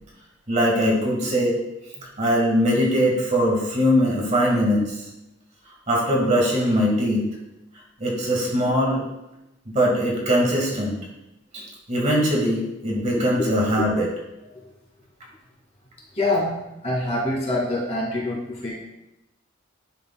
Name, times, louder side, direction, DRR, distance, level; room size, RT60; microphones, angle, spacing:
voice 1, 0.5-1.6 2.0-5.1 5.9-7.2 8.0-9.0 9.7-11.0 11.5-11.6 11.9-14.1, equal, 35° right, -2 dB, 1.9 m, -21 dB
voice 2, 16.1-16.5 16.8-18.7, left 2 dB, 30° left, -4 dB, 2.4 m, -25 dB
10.5 x 6.7 x 2.3 m, 0.92 s
head